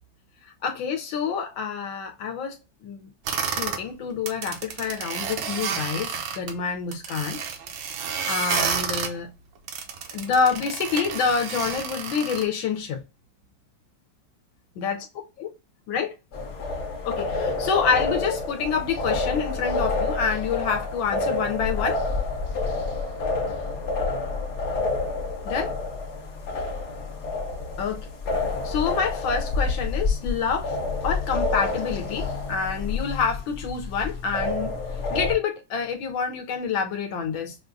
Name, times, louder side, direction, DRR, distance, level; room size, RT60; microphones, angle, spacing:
voice 1, 0.6-2.6 2.8-3.1 3.5-7.4 8.3-9.3 10.1-13.0 14.8-15.0 15.4-15.5 15.9-16.1 17.0-22.0 25.4-25.7 27.8-28.0 28.6-30.7 31.0-34.7 35.1-37.6, left 6 dB, 80° left, 1.4 m, -27 dB
sound 1, 3.3-3.8 4.2-6.5 6.9-9.1 9.7-12.5, right 6 dB, 75° right, 1.4 m, -30 dB
sound 2, 16.3-35.4, left 3 dB, 45° left, 1.1 m, -28 dB
6.1 x 2.3 x 2.5 m
omnidirectional pair, 2.2 m